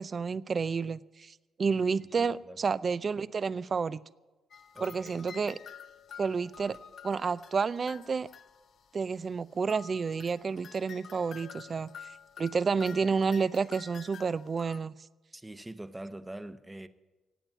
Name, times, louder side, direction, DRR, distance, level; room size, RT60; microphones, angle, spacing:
voice 1, 0.0-4.0 4.8-5.6 6.2-6.8 7.0-8.3 8.9-12.1 12.4-14.9, right 5 dB, 40° right, 0.5 m, -30 dB
voice 2, 2.0-2.6 4.7-5.1 15.3-16.9, right 1 dB, 10° right, 0.9 m, -44 dB
sound 1, 4.5-9.2 9.7-14.8, left 7 dB, 60° left, 0.8 m, -49 dB
16.5 x 8.9 x 8.9 m
cardioid pair, 90°, 0 cm